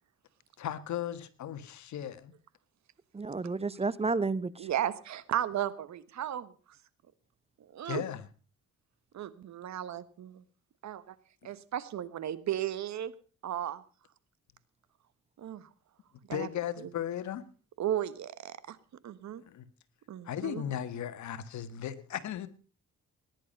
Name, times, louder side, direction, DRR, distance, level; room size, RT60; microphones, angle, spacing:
voice 1, 0.6-2.3 7.8-8.3 16.3-17.4 19.5-19.7 20.2-22.5, left 10 dB, 70° left, 12 dB, 1.6 m, -36 dB
voice 2, 3.1-4.7, right 3 dB, 20° right, 19 dB, 0.7 m, -31 dB
voice 3, 4.6-6.5 7.7-8.0 9.1-10.4 10.8-11.1 11.4-13.1 13.4-13.8 15.4-15.7 16.3-16.5 16.8-16.9 17.8-18.8 19.0-19.4 20.1-20.6, right 11 dB, 65° right, 16 dB, 1.3 m, -35 dB
19.0 x 11.0 x 5.3 m, 0.38 s
cardioid pair, 90°, 30 cm